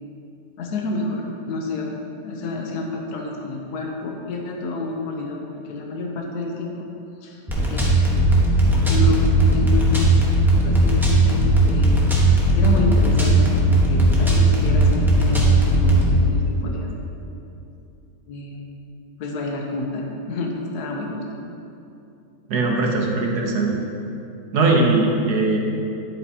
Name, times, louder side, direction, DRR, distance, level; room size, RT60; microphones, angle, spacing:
voice 1, 0.6-1.9 2.2-6.9 7.2-7.4 7.7-7.9 8.7-10.1 10.6-12.2 12.5-16.9 17.3-17.4 18.3-18.6 19.2-21.4, left 3 dB, 75° left, 0 dB, 1.4 m, -29 dB
sound 1, 7.5-16.1, right 1 dB, ahead, 1.0 m, -17 dB
voice 2, 22.5-23.8 24.5-25.6, right 3 dB, 80° right, 0 dB, 1.7 m, -20 dB
10.0 x 8.7 x 2.9 m, 2.7 s
omnidirectional pair, 1.7 m